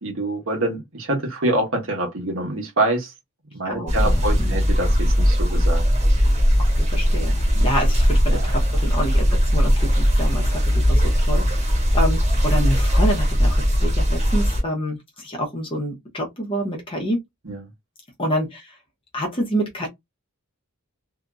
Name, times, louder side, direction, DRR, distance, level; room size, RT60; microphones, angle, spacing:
voice 1, 0.0-3.1 3.5-5.8 7.5-7.7 8.3-8.5 17.4-17.6, right 2 dB, 65° right, 1.3 m, -25 dB
voice 2, 3.6-4.6 6.8-7.4 7.6-17.2 18.2-18.7 19.1-19.9, equal, 25° left, 0.9 m, -27 dB
sound 1, 3.9-14.6, equal, 35° right, 1.2 m, -19 dB
2.8 x 2.6 x 2.4 m
head